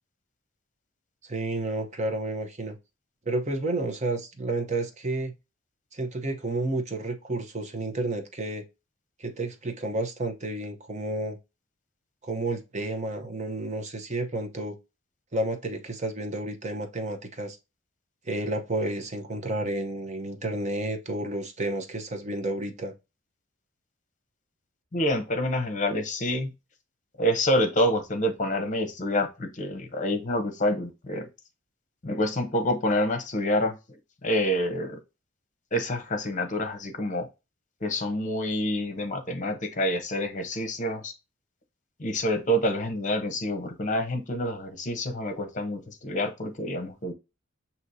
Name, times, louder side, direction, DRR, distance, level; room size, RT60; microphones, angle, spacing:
voice 1, 1.2-2.8 3.3-5.3 5.9-8.6 9.2-11.4 12.2-14.8 15.3-17.6 18.3-22.9, right 2 dB, 35° right, 0.8 m, -31 dB
voice 2, 24.9-26.5 27.2-31.3 32.0-33.8 34.2-35.0 35.7-37.3 37.8-41.1 42.0-47.1, equal, 40° left, 0.9 m, -27 dB
6.1 x 2.9 x 2.7 m
head